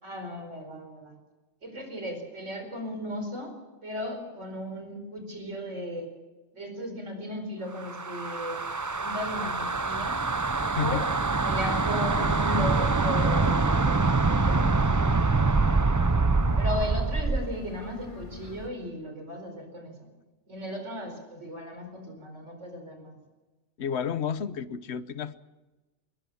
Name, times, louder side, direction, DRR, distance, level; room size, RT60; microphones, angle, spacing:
voice 1, 0.0-1.1 1.6-3.5 3.8-6.1 6.5-8.6 9.0-10.2 10.7-11.1 11.4-15.6 16.6-20.1 20.5-23.2, left 1 dB, 70° right, 5 dB, 4.9 m, -36 dB
sound 1, 7.8-17.5, right 3 dB, 25° right, 0.4 m, -25 dB
voice 2, 10.7-11.2 23.8-25.4, left 8 dB, 60° left, 14 dB, 1.1 m, -31 dB
sound 2, 13.5-18.7, left 1 dB, 25° left, 2.5 m, -43 dB
20.5 x 20.0 x 7.1 m, 1.1 s
omnidirectional pair, 1.3 m